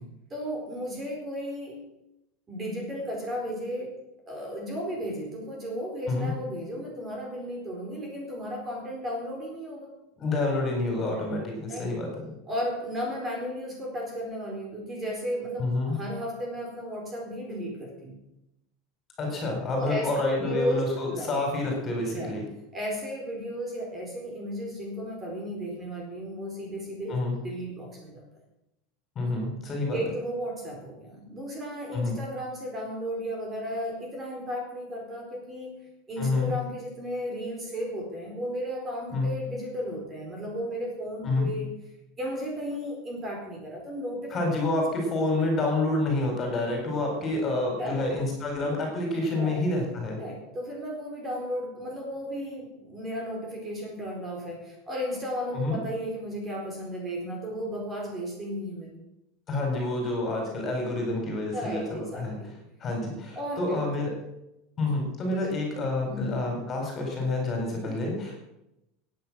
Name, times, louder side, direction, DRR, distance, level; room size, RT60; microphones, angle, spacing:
voice 1, 0.3-1.8 2.5-3.9 4.3-9.9 11.7-11.9 12.5-18.2 19.7-20.8 21.1-21.3 22.1-22.4 22.7-28.2 29.9-35.8 36.1-41.7 42.2-44.6 47.8-48.1 49.3-49.6 50.2-58.9 59.7-59.8 61.5-62.6 63.3-63.8 65.3-65.8 66.1-66.4 67.8-68.0, equal, 20° right, -1 dB, 4.5 m, -34 dB
voice 2, 10.2-12.1 15.6-16.0 19.2-22.4 27.1-27.3 29.1-30.0 31.9-32.2 36.2-36.5 39.1-39.3 41.2-41.5 44.3-50.2 55.5-55.8 59.5-62.3 62.8-64.1 64.8-68.4, left 2 dB, 25° left, 1 dB, 4.6 m, -28 dB
16.5 x 9.6 x 6.4 m, 0.88 s
supercardioid pair, 160°, 0 cm